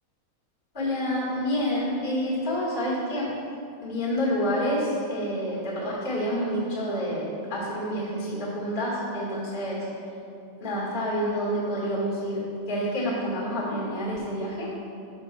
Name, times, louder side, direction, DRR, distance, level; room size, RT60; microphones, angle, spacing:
voice 1, 0.7-3.3 3.8-9.9 10.6-14.7, equal, 30° left, -7 dB, 0.9 m, -28 dB
6.2 x 6.2 x 5.9 m, 2.6 s
omnidirectional pair, 4.5 m